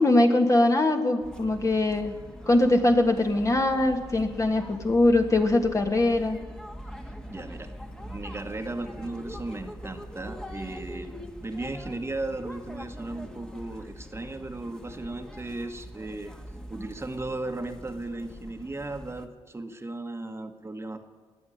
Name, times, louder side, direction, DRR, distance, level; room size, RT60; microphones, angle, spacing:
voice 1, 0.0-2.1 2.5-6.4, left 2 dB, 30° left, 4 dB, 1.6 m, -22 dB
sound 1, 1.2-19.3, equal, 5° left, 1.4 m, -43 dB
voice 2, 7.3-7.7 8.0-11.1 11.4-16.3 16.7-21.0, right 2 dB, 25° right, 6 dB, 1.3 m, -36 dB
19.5 x 7.2 x 10.0 m, 1.5 s
cardioid pair, 75°, 10 cm